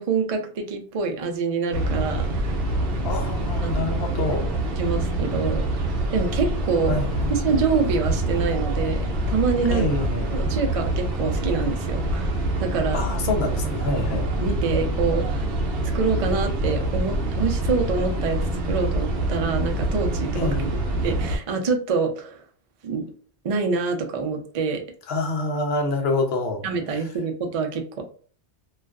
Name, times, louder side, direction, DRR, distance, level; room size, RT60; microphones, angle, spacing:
voice 1, 0.0-2.6 3.6-3.7 4.8-7.0 7.3-9.9 10.3-13.0 14.4-15.5 15.9-20.5 21.0-22.4 22.8-23.1 23.4-24.8 26.6-28.0, right 5 dB, 50° right, 0.4 m, -26 dB
sound 1, 1.7-21.4, right 1 dB, 65° right, 0.7 m, -25 dB
voice 2, 3.0-4.6 6.9-7.4 9.7-10.3 12.9-14.3 20.3-20.8 25.1-26.6 26.9-27.1, left 2 dB, 70° left, 0.8 m, -27 dB
2.4 x 2.3 x 2.2 m
omnidirectional pair, 1.1 m